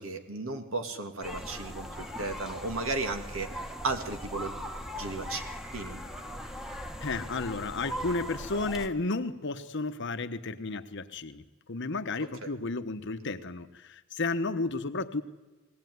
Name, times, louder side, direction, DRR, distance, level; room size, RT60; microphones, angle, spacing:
voice 1, 0.0-3.5 3.8-4.6 4.9-5.4 5.7-6.0 12.4-12.5, right 3 dB, 65° right, 6 dB, 2.4 m, -34 dB
sound 1, 1.2-8.9, equal, ahead, 1.5 m, -39 dB
voice 2, 7.0-15.2, left 3 dB, 60° left, 10 dB, 1.1 m, -33 dB
21.5 x 17.5 x 9.5 m, 1.2 s
head